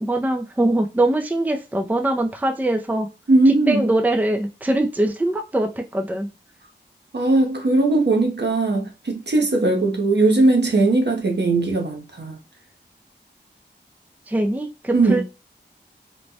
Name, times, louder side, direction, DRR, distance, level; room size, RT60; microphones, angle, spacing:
voice 1, 0.0-3.1 3.5-6.3 14.3-15.2, right 1 dB, 10° right, 0.4 m, -22 dB
voice 2, 3.3-3.9 7.1-12.4 14.9-15.2, right 2 dB, 65° right, 0.8 m, -19 dB
3.1 x 2.2 x 2.6 m
wide cardioid pair, 45°, 19 cm